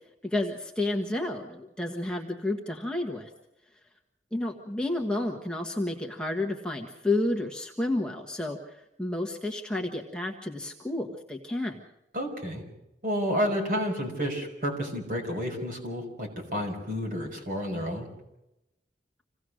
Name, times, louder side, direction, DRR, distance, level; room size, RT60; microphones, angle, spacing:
voice 1, 0.2-3.3 4.3-8.7 9.0-11.8, left 2 dB, 5° left, 2 dB, 1.4 m, -31 dB
voice 2, 12.1-12.6 13.0-18.1, equal, 50° right, 3 dB, 5.7 m, -30 dB
27.0 x 17.5 x 6.4 m, 0.90 s
head